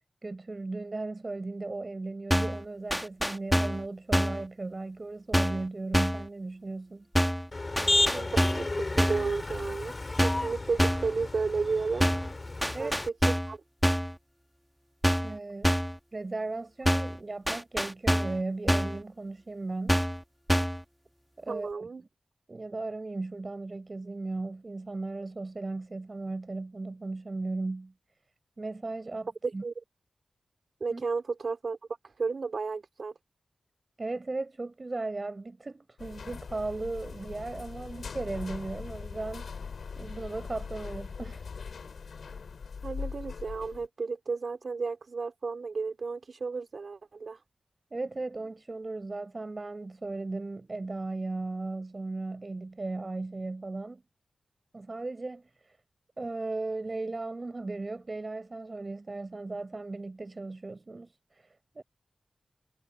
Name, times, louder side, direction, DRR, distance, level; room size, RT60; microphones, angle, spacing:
voice 1, 0.2-7.1 12.7-13.0 15.2-15.7 16.1-20.1 21.4-21.9 22.5-27.9 28.6-29.6 30.9-31.0 34.0-39.7 40.0-41.5 47.9-54.0 54.7-55.8 56.2-61.8, right 3 dB, 35° right, 4.8 m, -36 dB
sound 1, 2.3-2.6 2.9-3.8 4.1-4.4 5.3-5.7 5.9-6.3 7.2-7.5 7.8-8.7 9.0-9.3 10.2-10.5 10.8-11.1 12.0-12.3 12.6-13.5 13.8-14.1 15.0-15.4 15.6-16.0 16.9-17.2 17.5-18.4 18.7-19.0 19.9-20.2 20.5-20.8, equal, ahead, 1.2 m, -26 dB
Motor vehicle (road), 7.5-13.1, left 2 dB, 30° left, 5.1 m, -32 dB
voice 2, 8.1-12.1 12.8-13.6 21.5-22.0 29.4-29.7 30.8-31.8 32.0-33.1 42.8-47.4, right 4 dB, 60° right, 4.0 m, -33 dB
sound 2, 36.0-43.9, left 5 dB, 85° left, 5.2 m, -41 dB
wide cardioid pair, 115°, 0 cm